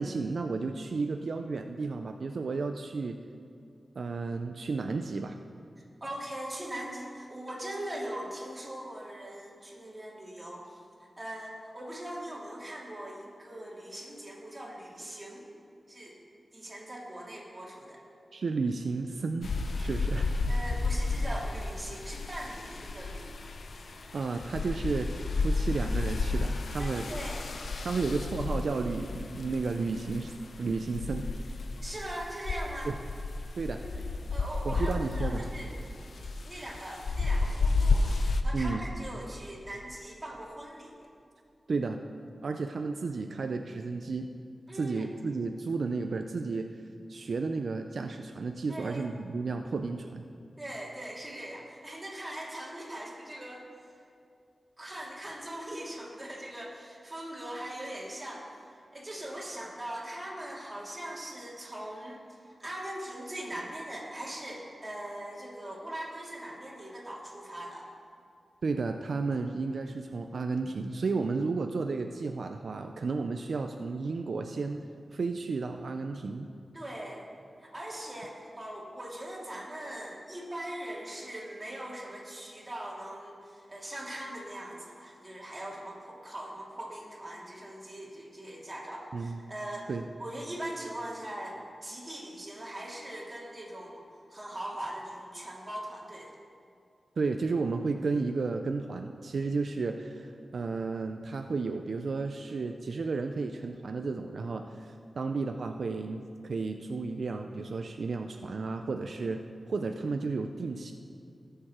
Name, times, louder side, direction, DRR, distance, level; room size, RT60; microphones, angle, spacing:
voice 1, 0.0-3.2 4.0-5.4 18.3-19.5 19.8-20.3 24.1-27.1 27.8-30.3 30.6-31.3 32.9-33.0 33.6-33.8 34.6-35.4 38.5-38.8 41.7-42.0 42.4-44.3 44.7-46.7 47.1-50.2 68.6-74.8 75.1-76.5 89.1-89.4 89.9-90.1 97.2-109.4 109.7-110.9, right 4 dB, 75° right, 5 dB, 0.4 m, -32 dB
voice 2, 6.0-15.5 15.9-16.1 16.5-18.0 20.5-23.3 26.8-27.4 31.8-32.9 33.6-34.0 34.3-35.7 36.0-41.1 44.7-45.1 48.7-49.1 50.6-53.7 54.8-58.6 58.9-67.9 76.7-77.3 77.6-89.9 90.2-94.0 94.3-96.3, right 1 dB, 25° right, -4 dB, 2.7 m, -41 dB
sound 1, 19.4-38.4, left 3 dB, 80° left, 0.7 m, -32 dB
18.0 x 6.8 x 4.4 m, 2.4 s
wide cardioid pair, 85°, 0 cm